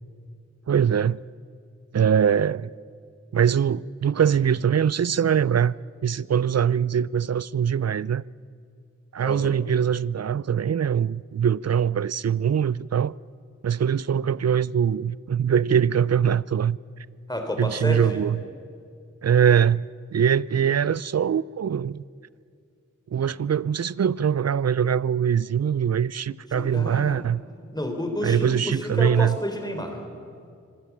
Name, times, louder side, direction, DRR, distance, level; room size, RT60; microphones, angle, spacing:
voice 1, 0.7-1.2 1.9-2.7 3.3-5.8 6.0-8.2 9.1-13.1 13.6-16.8 17.6-18.4 19.2-22.0 23.1-27.4 28.2-29.4, right 8 dB, 60° right, 0.4 m, -22 dB
voice 2, 9.2-9.5 17.3-18.2 26.5-27.2 27.7-30.0, left 1 dB, 15° left, 3.5 m, -30 dB
25.0 x 17.0 x 7.2 m
wide cardioid pair, 55°, 30 cm